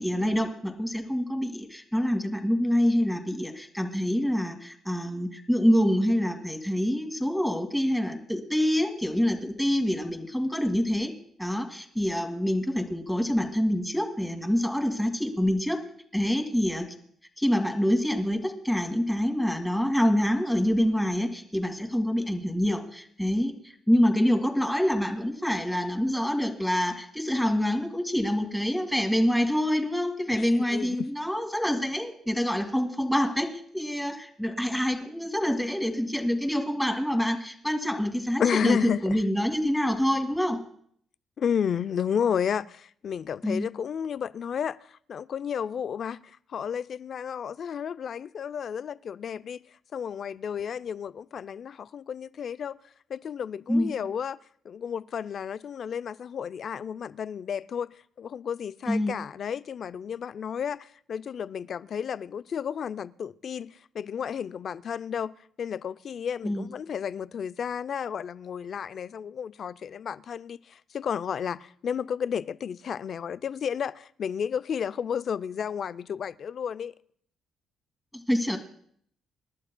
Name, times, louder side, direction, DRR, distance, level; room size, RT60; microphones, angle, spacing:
voice 1, 0.0-11.1 11.4-15.8 16.1-16.9 17.4-40.6 43.4-43.7 53.7-53.9 58.9-59.2 66.4-66.6 78.1-78.6, equal, ahead, 1.9 m, -26 dB
voice 2, 30.4-31.1 38.4-39.2 41.4-49.6 49.9-52.8 53.1-54.4 54.6-76.9, left 7 dB, 55° left, 0.4 m, -32 dB
27.0 x 11.5 x 2.2 m
cardioid pair, 90°, 0 cm